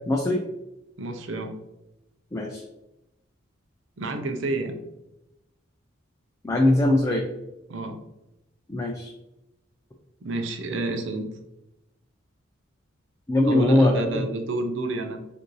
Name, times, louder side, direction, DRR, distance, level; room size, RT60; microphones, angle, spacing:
voice 1, 0.1-0.4 2.3-2.6 6.4-7.2 8.7-9.1 13.3-14.2, left 1 dB, 15° left, 0 dB, 0.4 m, -21 dB
voice 2, 1.0-1.5 4.0-4.8 7.7-8.0 10.2-11.3 13.4-15.2, right 2 dB, 65° right, 5 dB, 0.6 m, -29 dB
4.9 x 2.6 x 3.1 m, 0.91 s
head